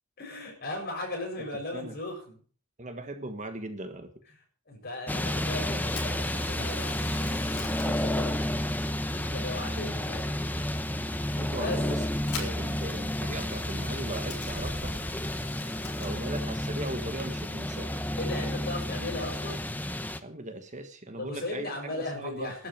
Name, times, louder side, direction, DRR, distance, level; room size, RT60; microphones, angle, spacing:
voice 1, 0.2-2.4 4.7-7.4 7.8-8.4 9.1-10.2 11.5-11.8 18.2-19.6 21.2-22.7, left 2 dB, 45° left, 1 dB, 7.2 m, -37 dB
voice 2, 2.8-4.1 11.4-14.9 16.0-18.0 20.2-22.5, right 2 dB, 35° right, 7 dB, 1.5 m, -38 dB
sound 1, 5.1-20.2, left 1 dB, 10° left, 0.9 m, -31 dB
Camera, 5.8-19.9, left 4 dB, 80° left, 5.6 m, -48 dB
12.0 x 8.5 x 9.2 m, 0.44 s
head